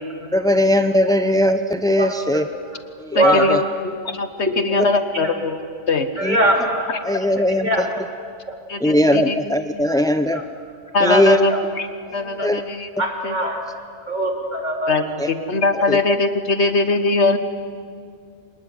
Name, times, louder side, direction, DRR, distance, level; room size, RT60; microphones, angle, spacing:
voice 1, 0.3-2.4 3.2-3.6 4.8-4.9 6.2-6.4 7.0-7.7 8.8-10.4 11.0-11.4 12.4-12.6 15.2-15.3 15.9-16.0, left 1 dB, 5° left, 10 dB, 0.4 m, -18 dB
voice 2, 2.0-2.4 3.1-3.5 5.2-5.3 6.2-6.9 7.6-7.9 9.9-10.0 10.3-10.4 11.0-11.2 11.5-11.6 13.0-13.6 14.1-15.0, right 1 dB, 40° right, 1 dB, 3.6 m, -21 dB
voice 3, 3.2-3.7 4.1-5.6 5.9-6.1 7.1-7.3 8.7-9.4 9.7-9.9 10.9-11.9 12.1-12.9 13.2-13.4 14.9-17.4, left 3 dB, 75° left, 10 dB, 1.7 m, -21 dB
25.0 x 20.0 x 9.5 m, 2.2 s
omnidirectional pair, 1.2 m